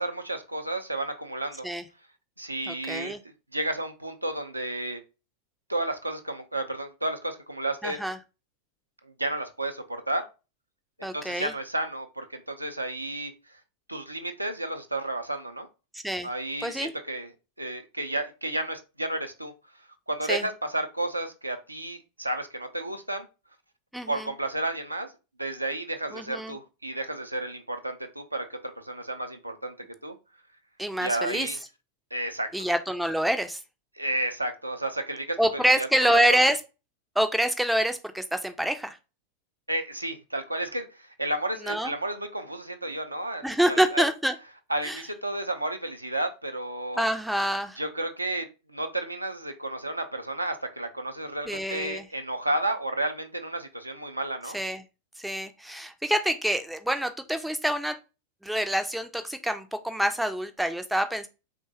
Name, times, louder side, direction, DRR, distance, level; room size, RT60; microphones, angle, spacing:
voice 1, 0.0-1.7 2.4-3.2 3.5-5.0 5.7-8.0 9.0-10.2 11.0-13.3 13.9-15.7 16.2-17.3 17.6-19.5 20.1-23.3 24.1-25.1 25.4-29.7 30.0-30.1 31.0-31.6 32.1-32.5 34.0-36.4 39.7-44.1 44.7-47.0 47.8-54.6, right 1 dB, 85° right, 6 dB, 0.4 m, -32 dB
voice 2, 2.7-3.2 7.8-8.2 11.0-11.5 16.0-16.3 16.6-16.9 20.3-20.4 23.9-24.3 26.1-26.5 30.8-31.5 32.5-33.6 35.4-36.6 37.2-39.0 41.7-41.9 43.4-44.3 44.8-45.0 47.0-47.8 51.5-52.0 54.5-54.8 55.2-58.0 58.4-61.3, right 1 dB, ahead, 8 dB, 0.3 m, -26 dB
3.2 x 2.1 x 2.7 m, 0.29 s
figure-of-eight pair, 90°, 0 cm